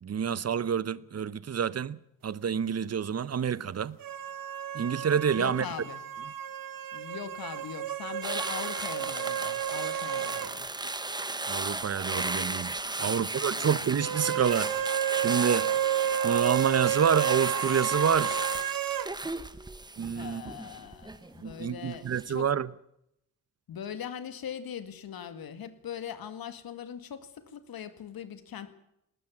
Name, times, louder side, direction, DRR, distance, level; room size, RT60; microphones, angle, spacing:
voice 1, 0.0-4.0 4.7-5.6 11.5-12.7 13.0-14.9 15.2-15.7 16.2-18.5 20.0-20.4 21.4-22.7, right 7 dB, 45° right, 0.8 m, -28 dB
sound 1, 4.0-10.6 10.8-10.9 14.0-19.1, right 10 dB, 70° right, 1.2 m, -31 dB
voice 2, 5.3-6.0 6.9-10.7 13.0-13.7 20.1-22.5 23.7-28.7, left 8 dB, 85° left, 2.1 m, -41 dB
sound 2, 8.2-21.6 21.9-22.2, right 2 dB, 10° right, 0.9 m, -35 dB
20.0 x 18.5 x 7.3 m
wide cardioid pair, 125°, 35 cm